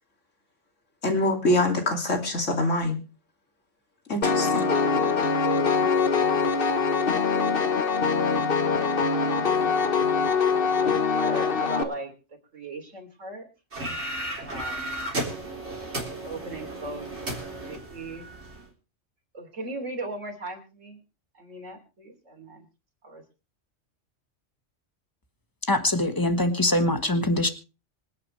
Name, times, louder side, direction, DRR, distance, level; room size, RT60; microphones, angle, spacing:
voice 1, 1.0-3.0 4.1-4.7, left 1 dB, 80° left, 3 dB, 3.1 m, -24 dB
Piano, 4.2-11.8, left 5 dB, 50° left, 1.3 m, -23 dB
voice 2, 9.6-10.2 10.5-10.7 11.2-12.1 12.5-13.5 14.4-15.0 16.2-17.1 17.6-18.3 19.3-21.0 21.3-22.7 23.0-23.2, right 2 dB, 85° right, 3 dB, 3.6 m, -38 dB
sound 1, 13.7-18.6, right 1 dB, 60° right, 4.2 m, -34 dB
voice 3, 25.7-27.5, left 1 dB, 15° left, 8 dB, 1.4 m, -23 dB
26.0 x 8.8 x 3.2 m, 0.32 s
omnidirectional pair, 1.3 m